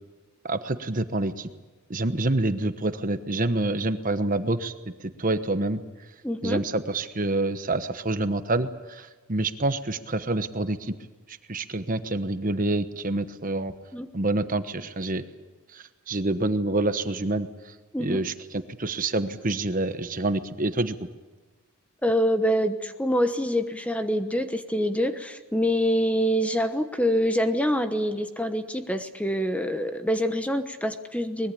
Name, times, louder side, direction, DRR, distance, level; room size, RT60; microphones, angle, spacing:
voice 1, 0.4-1.5 1.9-4.7 5.0-5.8 6.4-11.0 11.3-13.7 14.1-15.2 15.7-17.7 18.0-21.1, right 2 dB, 35° right, 10 dB, 1.1 m, -27 dB
voice 2, 6.2-6.6 13.9-14.1 17.9-18.2 22.0-31.5, equal, 5° left, 8 dB, 1.1 m, -25 dB
24.0 x 21.0 x 8.5 m, 1.2 s
head